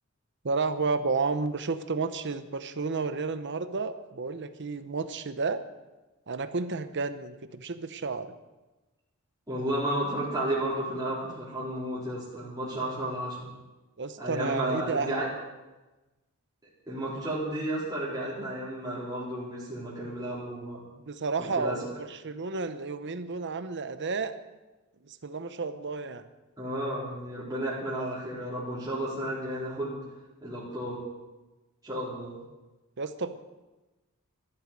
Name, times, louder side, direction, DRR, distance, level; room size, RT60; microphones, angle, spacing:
voice 1, 0.4-5.6 6.3-8.3 14.0-15.1 21.0-24.3 25.0-26.2 33.0-33.4, right 4 dB, 55° right, 11 dB, 0.9 m, -31 dB
voice 2, 9.5-13.5 14.2-15.3 16.9-20.8 21.6-21.8 26.6-29.9 30.4-31.0 31.8-32.4, right 1 dB, 15° right, -9 dB, 4.3 m, -32 dB
13.5 x 12.5 x 7.5 m, 1.1 s
head